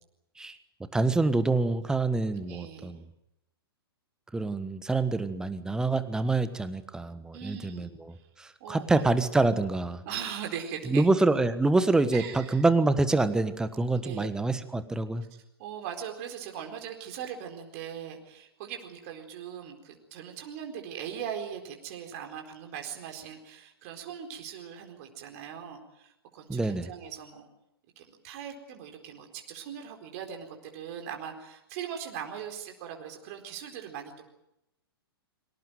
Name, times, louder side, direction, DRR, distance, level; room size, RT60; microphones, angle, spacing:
voice 1, 0.9-3.0 4.3-10.0 10.9-15.2 26.5-26.9, right 3 dB, 5° right, 12 dB, 1.4 m, -26 dB
voice 2, 2.4-2.9 7.3-7.9 8.6-9.0 10.0-11.1 12.1-12.6 13.9-14.3 15.3-27.5 28.0-34.3, right 8 dB, 35° right, 3 dB, 4.3 m, -40 dB
24.5 x 18.5 x 9.3 m, 0.85 s
figure-of-eight pair, 115°, 13 cm